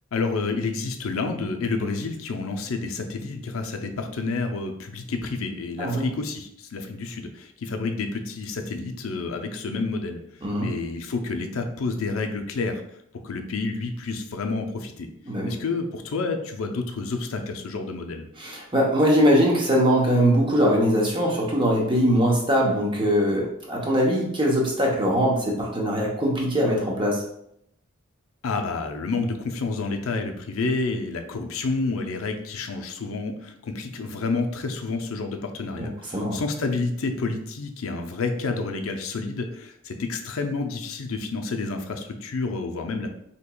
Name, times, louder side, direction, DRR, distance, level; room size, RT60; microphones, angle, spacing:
voice 1, 0.1-12.8 13.2-15.1 15.4-18.3 28.4-43.1, left 3 dB, 80° left, 5 dB, 0.5 m, -29 dB
voice 2, 10.4-10.7 15.3-15.5 18.4-27.2 35.8-35.9 36.1-36.4, equal, 25° right, -2 dB, 0.7 m, -21 dB
4.4 x 2.9 x 2.2 m, 0.75 s
head